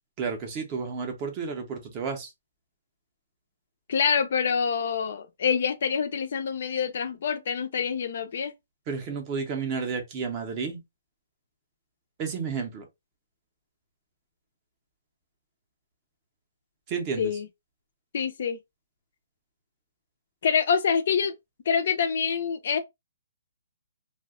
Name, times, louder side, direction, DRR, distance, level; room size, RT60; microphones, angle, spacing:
voice 1, 0.2-2.3 8.9-10.8 12.2-12.9 16.9-17.3, right 5 dB, 20° right, 0.5 m, -31 dB
voice 2, 3.9-8.5 17.2-17.5 18.1-18.6 20.4-21.4 21.7-22.8, left 6 dB, 45° left, 0.4 m, -26 dB
2.6 x 2.1 x 3.5 m
hypercardioid pair, 175°, 0 cm